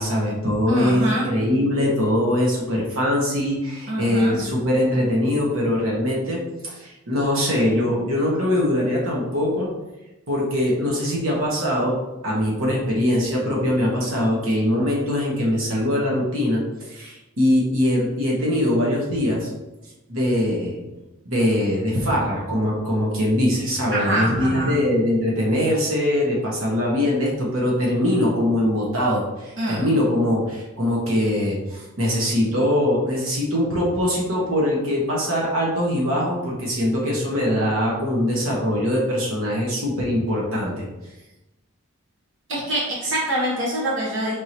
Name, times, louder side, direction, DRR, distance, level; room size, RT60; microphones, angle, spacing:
voice 1, 0.0-9.7 10.3-19.5 20.1-20.8 21.2-40.9, left 1 dB, 80° right, -3 dB, 1.2 m, -22 dB
voice 2, 0.7-1.3 3.9-4.4 23.9-24.7 29.6-29.8 42.5-44.3, right 1 dB, 60° right, -6 dB, 1.1 m, -24 dB
4.7 x 3.6 x 3.0 m, 1.0 s
head